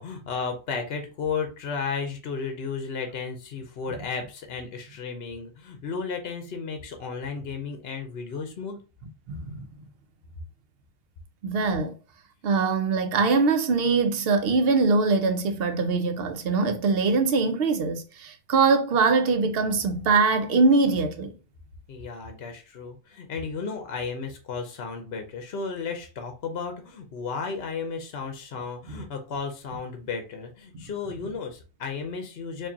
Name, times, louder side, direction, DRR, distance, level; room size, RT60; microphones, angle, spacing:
voice 1, 0.0-8.8 21.9-32.7, left 5 dB, 70° left, 1.0 m, -34 dB
voice 2, 9.3-9.7 11.4-11.9 12.4-21.3 28.9-29.0, right 4 dB, 65° right, 0.8 m, -22 dB
4.6 x 2.6 x 2.8 m
omnidirectional pair, 1.1 m